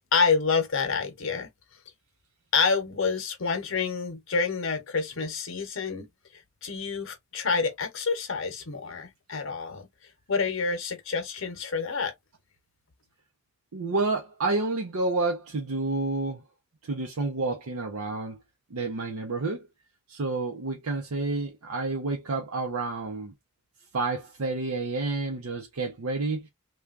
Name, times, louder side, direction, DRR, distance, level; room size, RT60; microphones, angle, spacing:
voice 1, 0.1-1.5 2.5-6.1 6.6-9.9 10.3-12.1, left 5 dB, 65° left, 0.8 m, -28 dB
voice 2, 13.7-16.4 16.8-18.4 18.7-19.7 20.1-23.3 23.9-26.5, right 3 dB, 90° right, 0.6 m, -29 dB
3.2 x 2.3 x 2.3 m
head